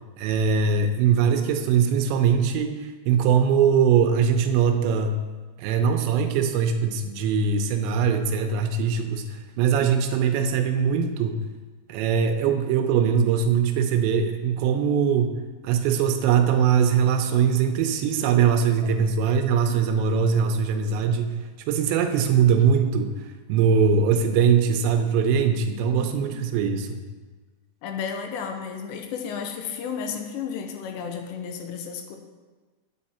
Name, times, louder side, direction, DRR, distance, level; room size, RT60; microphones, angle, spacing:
voice 1, 0.2-5.1 5.6-11.4 11.9-15.3 15.6-21.4 21.7-23.1 23.5-27.0, right 7 dB, 80° right, 6 dB, 2.9 m, -21 dB
voice 2, 20.0-20.5 25.9-26.5 27.8-32.2, left 6 dB, 85° left, 5 dB, 2.8 m, -33 dB
9.5 x 8.6 x 4.2 m, 1.3 s
omnidirectional pair, 5.3 m